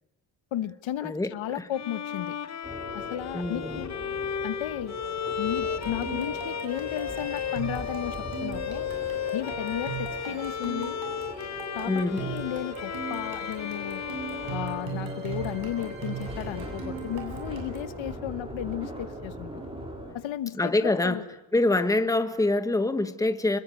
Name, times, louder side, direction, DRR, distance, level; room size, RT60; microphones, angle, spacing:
voice 1, 0.5-2.3 2.9-3.9 4.4-5.0 5.4-8.9 9.3-11.1 11.7-14.0 14.5-19.6 20.1-21.2, left 12 dB, 75° left, 14 dB, 1.2 m, -34 dB
voice 2, 1.0-1.7 3.3-3.8 11.9-12.3 20.6-21.2 21.5-23.6, left 2 dB, 5° left, 9 dB, 1.3 m, -25 dB
Bowed string instrument, 1.7-15.6, left 8 dB, 35° left, 1.1 m, -35 dB
sound 1, 2.6-20.1, equal, 10° right, 5.0 m, -40 dB
sound 2, 5.6-17.9, right 7 dB, 70° right, 7.9 m, -40 dB
26.5 x 22.0 x 9.6 m, 0.93 s
cardioid pair, 175°, 47 cm